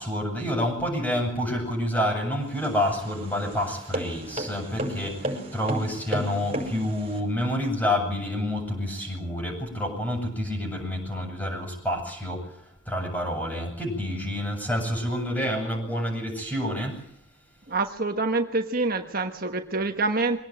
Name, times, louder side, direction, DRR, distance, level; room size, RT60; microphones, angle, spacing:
voice 1, 0.0-12.5 12.9-17.0, left 1 dB, 10° left, 2 dB, 7.9 m, -28 dB
sound 1, 2.4-7.2, right 1 dB, 30° right, 6.2 m, -33 dB
voice 2, 17.7-20.4, right 3 dB, 45° right, 5 dB, 1.3 m, -26 dB
24.0 x 18.0 x 9.0 m, 0.73 s
head